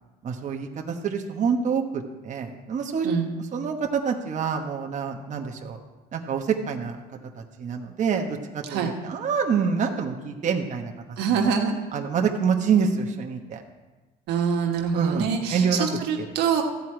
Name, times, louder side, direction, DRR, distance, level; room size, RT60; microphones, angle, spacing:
voice 1, 0.2-3.1 3.5-5.8 6.1-7.0 7.4-10.9 11.9-13.6 14.9-15.9 16.2-16.3, right 6 dB, 45° right, 2 dB, 1.1 m, -26 dB
voice 2, 8.6-9.0 11.2-11.7 14.3-16.6, right 6 dB, 90° right, 2 dB, 1.3 m, -25 dB
13.5 x 4.6 x 8.7 m, 1.2 s
cardioid pair, 110°, 17 cm